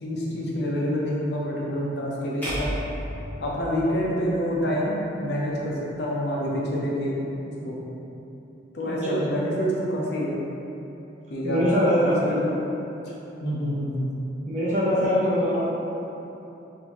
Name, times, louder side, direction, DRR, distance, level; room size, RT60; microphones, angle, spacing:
voice 1, 0.0-2.7 3.4-7.3 7.6-7.7 8.7-10.4 11.3-11.6 12.0-12.5 13.4-14.1, equal, 65° left, -5 dB, 0.6 m, -27 dB
sound 1, 2.4-4.7, equal, 10° left, 0.8 m, -33 dB
voice 2, 8.8-9.2 11.4-12.5 14.5-15.7, equal, 40° right, -8 dB, 0.8 m, -23 dB
3.9 x 2.6 x 3.0 m, 3.0 s
head